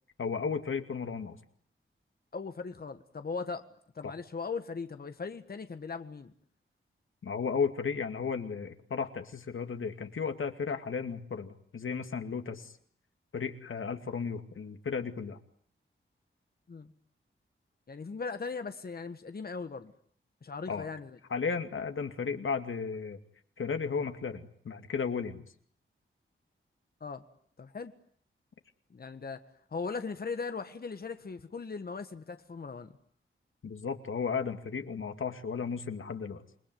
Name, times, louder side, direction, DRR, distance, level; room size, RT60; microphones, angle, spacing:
voice 1, 0.2-1.4 4.0-4.1 7.2-12.7 13.3-15.4 20.7-20.9 21.3-23.2 23.6-25.4 33.6-36.4, left 5 dB, 75° left, 7 dB, 2.5 m, -34 dB
voice 2, 2.3-3.6 3.9-6.3 16.7-16.9 17.9-19.9 20.4-21.2 27.0-27.3 27.6-27.9 28.9-29.4 29.7-32.9, left 4 dB, 45° left, 9 dB, 1.6 m, -38 dB
28.0 x 21.5 x 9.4 m, 0.62 s
wide cardioid pair, 150°, 21 cm